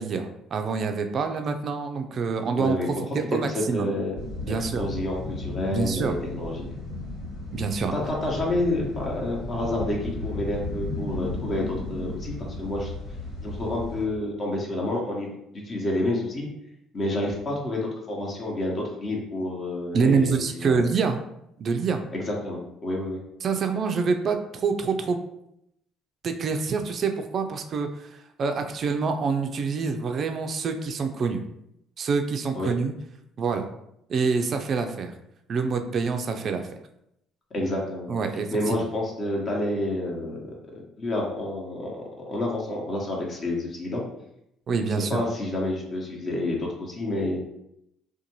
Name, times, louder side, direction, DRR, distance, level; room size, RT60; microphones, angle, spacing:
voice 1, 0.0-2.8 3.1-3.9 4.4-4.8 5.7-6.1 7.5-7.9 19.9-21.2 21.6-22.0 23.4-25.2 26.2-31.4 32.0-32.9 33.4-33.7 34.1-35.1 35.5-36.7 38.1-38.8 44.7-45.2, right 5 dB, 50° right, 6 dB, 0.3 m, -26 dB
voice 2, 2.5-2.9 3.3-4.1 4.5-6.6 7.9-12.9 13.4-15.3 15.6-16.5 16.9-17.8 18.1-20.9 22.1-23.2 32.5-32.7 37.5-38.2 38.5-40.5 41.0-42.0 42.3-44.0 45.1-47.4, left 1 dB, 45° left, -1 dB, 0.8 m, -29 dB
sound 1, 4.1-14.0, left 2 dB, 85° left, 1.3 m, -34 dB
2.5 x 2.2 x 2.9 m, 0.80 s
supercardioid pair, 70°, 0 cm